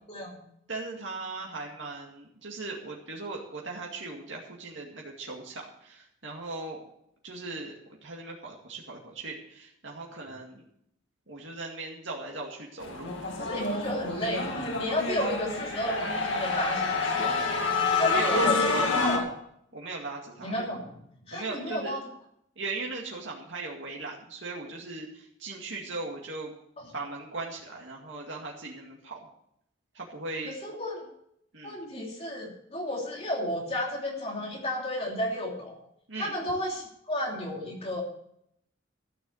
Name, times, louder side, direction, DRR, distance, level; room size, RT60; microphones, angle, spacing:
voice 1, 0.7-6.8 7.2-10.6 11.3-13.2 18.0-18.9 19.7-20.5 21.3-21.9 22.6-26.5 26.9-29.2 29.9-30.5 31.5-31.8 36.1-36.4, right 3 dB, 70° right, -2 dB, 2.2 m, -38 dB
sound 1, 12.8-19.2, left 3 dB, 75° left, 2.1 m, -28 dB
voice 2, 13.4-17.6 18.0-19.2 20.4-20.9 21.3-22.0 26.8-26.9 30.5-31.1 31.6-35.8 36.2-38.0, left 1 dB, 30° left, -1 dB, 3.1 m, -32 dB
13.5 x 6.8 x 7.9 m, 0.72 s
head